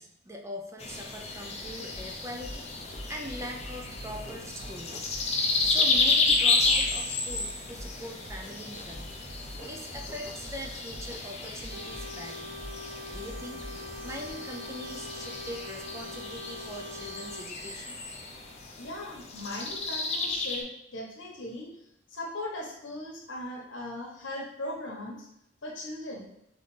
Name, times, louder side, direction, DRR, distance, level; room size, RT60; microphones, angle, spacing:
voice 1, 0.0-2.7 3.1-5.1 5.6-9.1 9.6-12.5 13.1-13.7 14.0-18.0, equal, 15° right, 2 dB, 0.5 m, -42 dB
sound 1, 0.8-20.6, left 3 dB, 35° left, 0.6 m, -31 dB
sound 2, 1.7-14.3, equal, 45° right, 0.9 m, -45 dB
sound 3, 11.7-17.4, left 1 dB, 70° right, 0.7 m, -43 dB
voice 2, 18.7-21.7 22.1-25.2 25.6-26.3, left 1 dB, 85° left, -1 dB, 1.2 m, -38 dB
4.0 x 4.0 x 3.3 m, 0.81 s
head